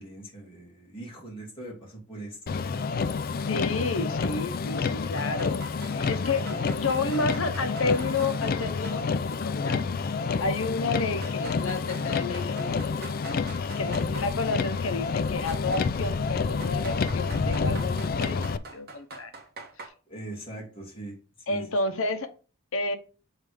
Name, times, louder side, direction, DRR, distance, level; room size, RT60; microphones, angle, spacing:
voice 1, 0.0-2.6 13.6-14.0 20.1-21.1 21.5-21.6, right 2 dB, 25° left, -3 dB, 2.3 m, -41 dB
Motor vehicle (road), 2.5-18.6, left 5 dB, 45° left, 0.3 m, -29 dB
voice 2, 3.4-5.6 5.9-6.5 6.7-9.8 10.4-13.0 13.8-19.3 21.5-22.3 22.7-23.0, left 3 dB, 80° left, 9 dB, 0.9 m, -31 dB
sound 1, 5.2-9.0 9.3-9.4 10.3-10.4 11.2-14.3 15.5-15.9 16.6-19.9, right 3 dB, 50° right, 1.3 m, -45 dB
7.4 x 3.3 x 4.9 m, 0.37 s
head